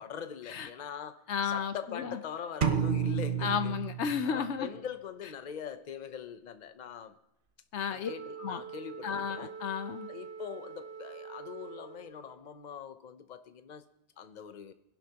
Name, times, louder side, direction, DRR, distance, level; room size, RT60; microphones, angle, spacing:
voice 1, 0.0-3.8 4.2-7.2 7.9-9.5 10.1-13.8 14.2-14.7, left 8 dB, 45° left, 10 dB, 0.8 m, -42 dB
voice 2, 1.3-2.2 3.4-4.7 7.7-8.1 8.4-8.6 9.0-10.1, left 7 dB, 90° left, 10 dB, 1.1 m, -33 dB
sound 1, 2.6-4.6, right 8 dB, 50° right, 0.8 m, -30 dB
Wind instrument woodwind instrument, 8.0-12.4, right 6 dB, 70° right, 1.1 m, -45 dB
21.5 x 11.5 x 2.9 m, 0.79 s
omnidirectional pair, 1.1 m